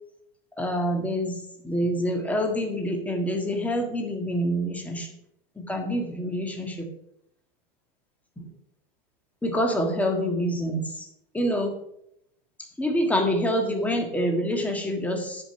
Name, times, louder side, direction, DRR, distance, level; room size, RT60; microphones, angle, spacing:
voice 1, 0.6-5.1 5.5-6.9 8.4-8.5 9.4-11.1 11.3-11.8 12.8-15.4, equal, 5° left, 3 dB, 1.6 m, -26 dB
9.9 x 5.4 x 6.9 m, 0.77 s
supercardioid pair, 145°, 29 cm